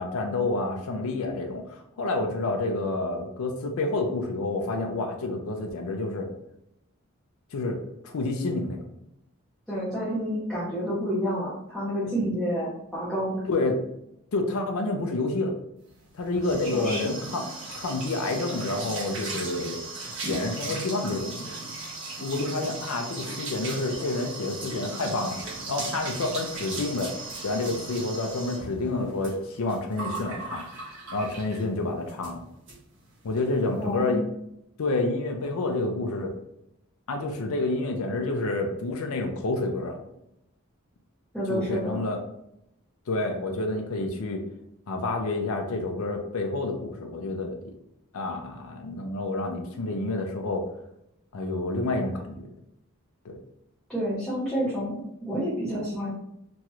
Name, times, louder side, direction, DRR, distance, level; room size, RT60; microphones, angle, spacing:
voice 1, 0.0-6.3 7.5-7.8 8.0-8.8 13.5-13.8 14.3-15.5 16.1-17.4 17.7-19.8 20.0-21.5 22.2-25.4 25.7-27.1 27.4-30.6 31.1-32.5 33.2-34.2 34.8-36.3 37.1-40.0 41.5-42.2 43.1-44.4 44.9-47.6 48.1-50.7 51.3-52.5 53.2-53.4, left 2 dB, 75° left, 3 dB, 0.4 m, -29 dB
voice 2, 9.7-13.4 16.6-17.1 33.8-34.3 41.3-42.0 53.9-56.1, equal, ahead, -10 dB, 0.6 m, -29 dB
sound 1, 16.0-31.7 32.1-32.3 32.7-32.8 33.1-33.4, right 2 dB, 60° right, 1.0 m, -37 dB
3.0 x 2.4 x 2.9 m, 0.80 s
head